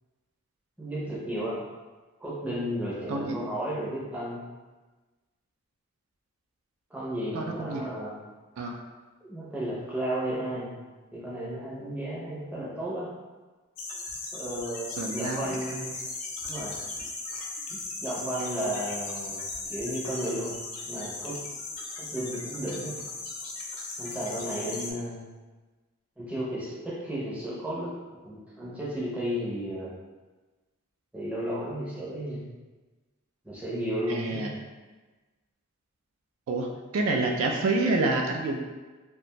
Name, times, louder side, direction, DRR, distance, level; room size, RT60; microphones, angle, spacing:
voice 1, 0.8-1.6 2.2-4.4 6.9-8.1 9.3-10.7 11.1-13.1 14.3-15.9 16.4-16.8 17.7-19.4 19.7-20.6 20.9-21.4 22.0-23.0 24.0-25.3 26.2-27.9 28.2-29.9 31.1-32.4 33.4-34.5, right 1 dB, 5° right, -8 dB, 0.5 m, -33 dB
voice 2, 7.3-7.9 8.6-8.8 15.0-15.5 15.8-15.9 34.1-34.5 36.5-38.6, right 2 dB, 70° right, 2 dB, 0.3 m, -28 dB
sound 1, 13.8-24.9, left 3 dB, 85° left, 0.5 m, -37 dB
2.5 x 2.2 x 2.9 m, 1.2 s
head